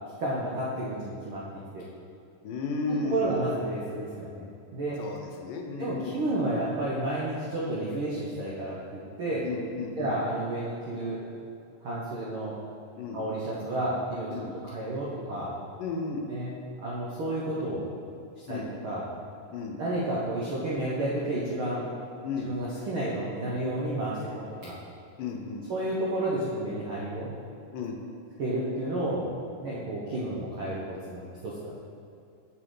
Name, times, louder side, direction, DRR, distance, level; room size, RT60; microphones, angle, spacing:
voice 1, 0.2-1.5 1.7-1.8 2.9-4.5 4.7-5.0 5.8-9.4 10.0-11.2 11.8-12.6 13.1-15.5 16.3-16.5 16.8-17.9 18.5-19.0 19.8-21.9 22.4-24.8 25.7-27.3 28.4-29.3 29.6-31.7, right 1 dB, 75° right, -6 dB, 1.2 m, -31 dB
voice 2, 2.4-3.4 5.0-6.2 9.4-10.2 13.0-13.2 14.3-14.5 15.8-16.3 18.5-18.7 19.5-19.8 22.2-22.5 25.2-25.6 27.7-28.0, left 4 dB, 80° left, 2 dB, 2.3 m, -33 dB
8.0 x 6.9 x 3.8 m, 2.5 s
omnidirectional pair, 3.9 m